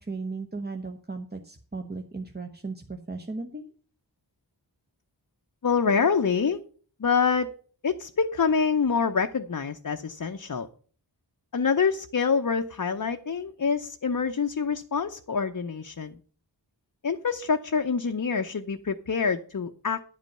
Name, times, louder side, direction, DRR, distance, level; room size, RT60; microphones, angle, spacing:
voice 1, 0.0-3.6, right 3 dB, 25° right, 4 dB, 0.9 m, -36 dB
voice 2, 5.6-6.6 7.0-7.5 7.8-10.7 11.5-16.2 17.0-20.0, left 5 dB, 45° left, 6 dB, 0.7 m, -26 dB
10.5 x 5.3 x 7.4 m, 0.43 s
wide cardioid pair, 50°, 43 cm